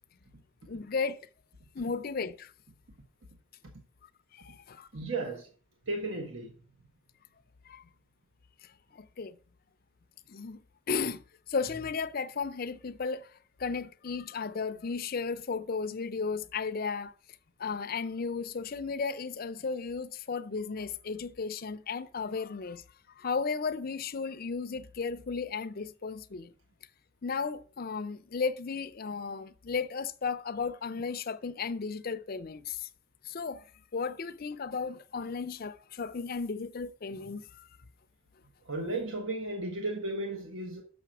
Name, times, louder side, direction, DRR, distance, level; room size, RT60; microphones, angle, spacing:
voice 1, 0.6-1.2 1.7-2.5 4.3-4.9 7.7-7.9 8.6-9.4 10.3-10.6 10.9-13.3 13.6-17.1 17.6-22.8 23.2-26.5 27.2-32.9 33.2-33.7 33.9-37.7, left 5 dB, 45° left, 0.5 m, -34 dB
voice 2, 4.9-5.5 5.9-6.5 38.7-40.8, right 2 dB, 70° right, 1.3 m, -34 dB
6.4 x 5.9 x 6.0 m
head